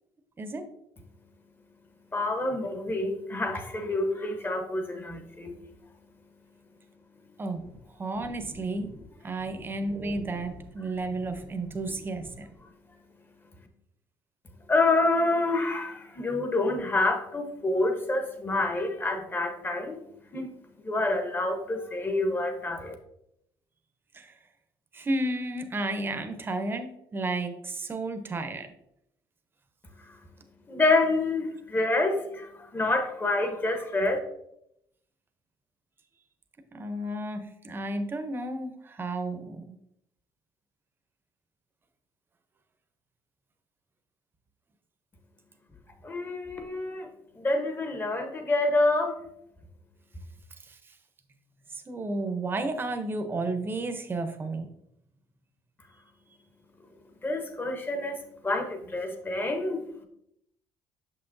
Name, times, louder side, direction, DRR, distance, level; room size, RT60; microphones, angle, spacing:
voice 1, 1.1-7.4 12.6-13.7 14.5-22.9 29.8-34.2 46.0-49.2 56.7-60.1, left 2 dB, 20° left, 5 dB, 1.0 m, -28 dB
voice 2, 8.0-8.9 9.2-12.5 24.1-24.3 24.9-28.7 36.7-39.8 50.7-50.8 51.9-54.7, right 2 dB, 25° right, 7 dB, 0.7 m, -32 dB
6.5 x 5.8 x 2.6 m, 0.78 s
cardioid pair, 120°, 9 cm